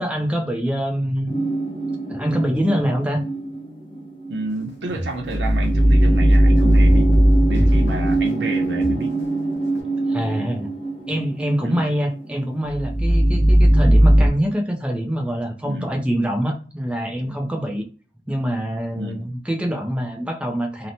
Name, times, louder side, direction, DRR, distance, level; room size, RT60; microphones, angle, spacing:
voice 1, 0.0-1.4 2.1-3.2 10.1-10.7 11.1-17.8 18.3-20.9, equal, 5° right, 2 dB, 0.3 m, -24 dB
sound 1, 1.3-14.3, right 1 dB, 30° left, 0.7 m, -19 dB
voice 2, 4.3-7.1 7.5-9.2 11.6-11.8 15.6-15.9 18.9-19.2, right 1 dB, 75° right, 2 dB, 0.6 m, -29 dB
sound 2, 4.5-9.8, equal, 65° left, 0.8 m, -34 dB
2.8 x 2.1 x 2.6 m, 0.38 s
head